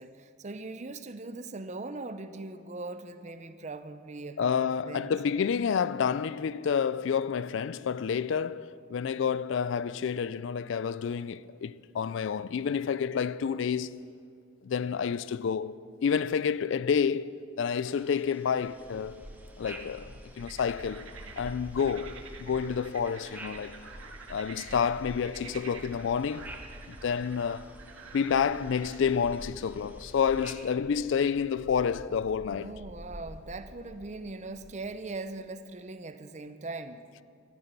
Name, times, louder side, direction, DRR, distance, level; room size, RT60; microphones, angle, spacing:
voice 1, 0.0-5.1 32.5-37.0, right 3 dB, 35° right, 0.6 m, -40 dB
voice 2, 4.4-14.0 14.6-15.8 16.0-19.3 19.6-23.8 24.3-26.5 26.9-27.7 28.1-32.8, left 6 dB, 60° left, 0.3 m, -29 dB
sound 1, 17.8-30.5, right 2 dB, 10° right, 1.1 m, -53 dB
sound 2, 18.5-34.8, equal, 55° right, 3.4 m, -49 dB
sound 3, 20.4-29.1, right 5 dB, 80° right, 1.5 m, -49 dB
14.0 x 13.5 x 6.8 m
head